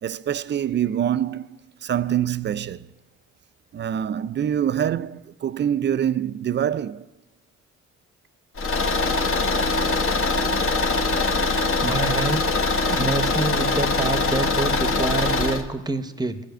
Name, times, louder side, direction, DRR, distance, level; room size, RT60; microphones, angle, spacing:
voice 1, 0.0-1.5 1.8-2.9 3.7-7.0, right 9 dB, 40° right, 0.4 m, -25 dB
Car / Engine, 8.6-15.6, left 3 dB, 45° left, 1.1 m, -22 dB
voice 2, 11.8-12.4 12.9-16.4, right 3 dB, 15° right, 0.8 m, -27 dB
13.0 x 5.0 x 9.1 m
cardioid pair, 90°, 30 cm